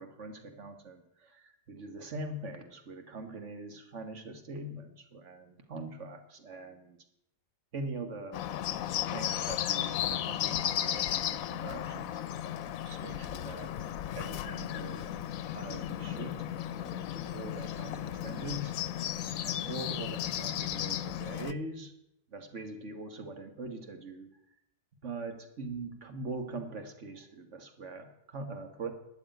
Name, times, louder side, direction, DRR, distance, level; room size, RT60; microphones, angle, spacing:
voice 1, 0.0-7.0 7.7-8.4 9.1-12.2 12.8-13.7 14.1-15.1 15.5-16.5 16.7-18.7 19.4-21.9 22.3-24.3 25.0-28.9, right 2 dB, 60° right, 6 dB, 1.9 m, -42 dB
Bird, 8.3-21.5, left 11 dB, 85° left, 1.1 m, -35 dB
12.0 x 7.1 x 9.2 m, 0.80 s
omnidirectional pair, 1.4 m